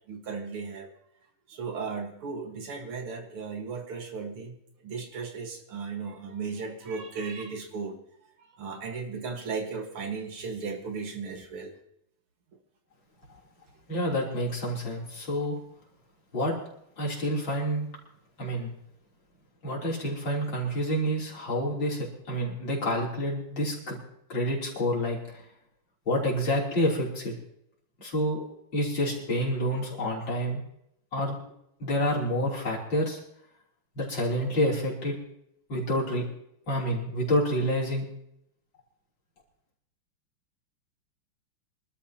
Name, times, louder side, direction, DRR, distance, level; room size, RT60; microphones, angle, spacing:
voice 1, 0.1-0.9 1.5-4.6 4.8-8.0 8.6-11.7, right 5 dB, 80° right, 3 dB, 2.7 m, -36 dB
voice 2, 13.9-15.6 16.3-16.5 17.0-17.9 18.4-18.7 19.6-24.0 24.3-25.2 26.1-27.3 28.0-28.4 28.7-30.6 31.1-31.3 31.8-33.2 34.0-35.2 35.7-36.2 36.7-38.1, equal, 60° left, -3 dB, 4.2 m, -28 dB
24.5 x 12.5 x 2.9 m, 0.76 s
omnidirectional pair, 2.4 m